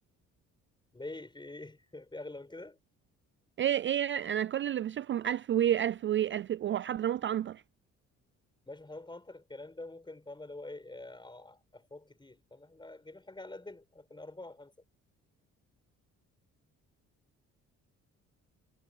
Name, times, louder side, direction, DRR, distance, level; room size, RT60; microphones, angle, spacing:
voice 1, 0.9-2.8 8.7-14.7, left 2 dB, 15° left, 7.9 m, -46 dB
voice 2, 3.6-7.6, right 10 dB, 40° right, 0.4 m, -30 dB
cardioid pair, 90°, 30 cm